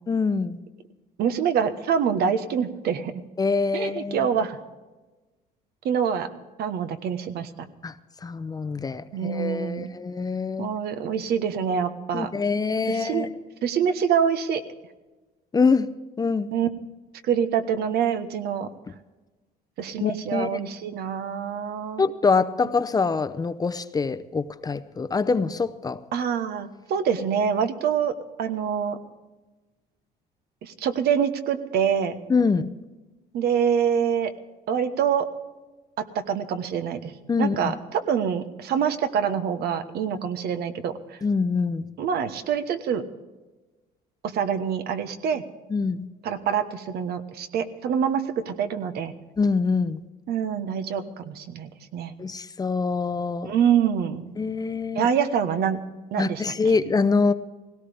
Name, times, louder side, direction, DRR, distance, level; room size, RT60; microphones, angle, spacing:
voice 1, 0.1-0.6 3.4-4.3 7.8-7.9 8.2-10.7 12.1-13.3 15.5-15.9 16.2-16.5 20.0-20.6 22.0-26.0 32.3-32.7 37.3-37.7 41.2-41.9 45.7-46.1 49.4-50.0 52.2-53.5 54.4-55.1 56.2-57.3, left 4 dB, 20° left, 13 dB, 0.6 m, -24 dB
voice 2, 1.2-3.1 3.7-4.6 5.8-6.3 6.6-7.7 9.1-9.9 10.6-12.3 12.9-13.3 13.6-14.6 16.5-16.7 17.2-18.7 19.8-22.0 26.1-29.0 30.6-32.2 33.3-34.3 34.7-35.3 36.0-37.1 37.4-40.9 42.0-43.0 44.2-45.4 46.2-49.1 50.3-52.1 53.4-54.3 54.9-55.8 56.1-56.8, right 7 dB, 70° right, 9 dB, 1.2 m, -25 dB
18.5 x 17.0 x 3.5 m, 1.2 s
cardioid pair, 110°, 17 cm